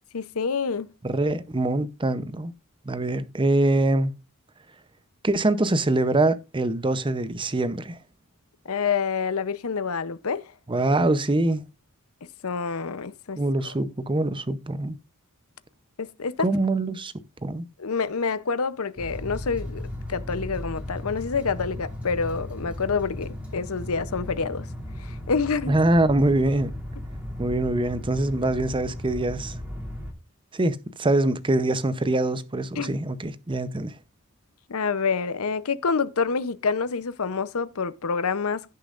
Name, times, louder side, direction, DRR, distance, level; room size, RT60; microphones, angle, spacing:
voice 1, 0.1-0.9 8.7-10.4 12.4-13.4 13.6-13.7 16.0-16.5 17.8-19.8 20.1-24.7 25.0-25.8 32.8-32.9 34.7-38.7, left 5 dB, 70° left, 0.7 m, -27 dB
voice 2, 1.0-2.5 2.9-4.1 5.2-8.0 10.7-11.6 13.4-15.0 16.4-17.1 17.4-17.6 25.7-26.7 27.4-29.5 30.5-33.9, right 2 dB, 20° right, 0.7 m, -24 dB
sound 1, 19.0-30.1, left 1 dB, 5° right, 2.8 m, -36 dB
16.5 x 6.8 x 2.5 m
head